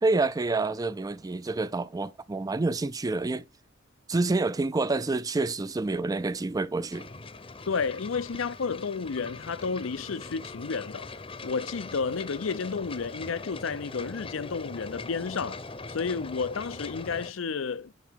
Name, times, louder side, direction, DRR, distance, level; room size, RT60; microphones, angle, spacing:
voice 1, 0.0-3.5 4.1-7.1, right 3 dB, 20° right, 0.4 m, -28 dB
sound 1, 6.9-17.3, left 3 dB, 30° left, 0.8 m, -41 dB
voice 2, 7.7-11.1 11.4-15.6 15.9-17.9, left 5 dB, 85° left, 0.6 m, -31 dB
10.5 x 4.5 x 3.6 m
head